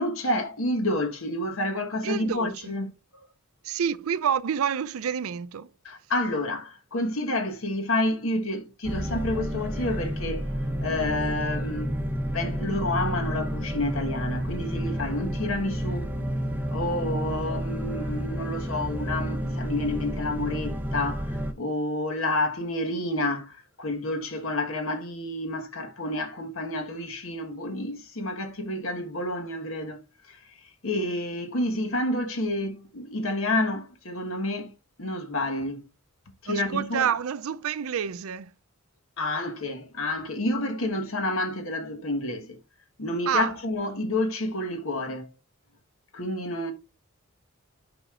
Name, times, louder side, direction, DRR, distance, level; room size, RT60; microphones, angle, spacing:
voice 1, 0.0-2.9 5.8-10.5 10.8-11.9 12.3-16.0 16.7-23.5 23.8-30.0 30.3-30.4 30.8-34.7 35.0-35.9 36.4-37.1 39.2-42.6 43.0-45.3 46.1-46.7, left 1 dB, 70° left, 1.3 m, -29 dB
voice 2, 2.0-2.7 3.6-5.7 36.5-38.5 43.3-43.5, right 8 dB, 75° right, 0.4 m, -28 dB
sound 1, 8.8-21.5, equal, 10° right, 0.7 m, -30 dB
11.0 x 5.1 x 2.4 m
head